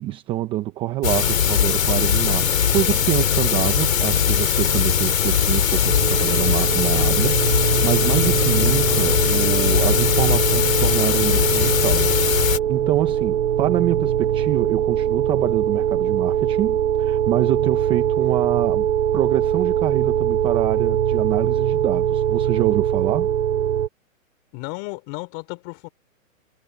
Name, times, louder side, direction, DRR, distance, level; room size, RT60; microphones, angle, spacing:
voice 1, 0.0-18.9 19.1-23.3, right 14 dB, 10° right, 0.8 m, -26 dB
sound 1, 1.0-12.6, left 8 dB, 75° left, 3.9 m, -20 dB
sound 2, 5.9-23.9, right 10 dB, 60° right, 4.5 m, -22 dB
Wind instrument woodwind instrument, 7.6-13.2, right 21 dB, 35° right, 6.6 m, -49 dB
voice 2, 24.5-25.9, left 30 dB, 30° left, 5.3 m, -34 dB
hypercardioid pair, 155°, 41 cm